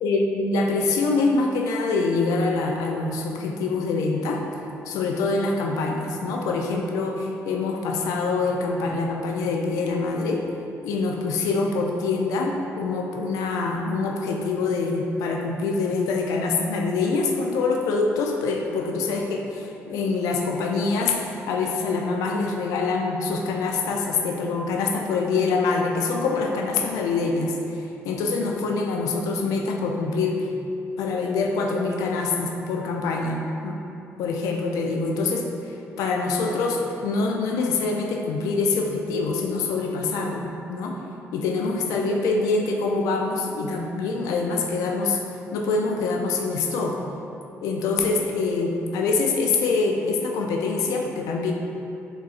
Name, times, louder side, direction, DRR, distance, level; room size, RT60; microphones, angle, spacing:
voice 1, 0.0-4.4 4.9-10.4 10.8-27.5 28.0-30.5 31.0-33.8 34.2-41.0 41.3-45.2 45.5-47.0 47.6-51.5, left 3 dB, 90° left, 1 dB, 0.3 m, -25 dB
4.1 x 3.7 x 2.4 m, 2.8 s
cardioid pair, 95°, 6 cm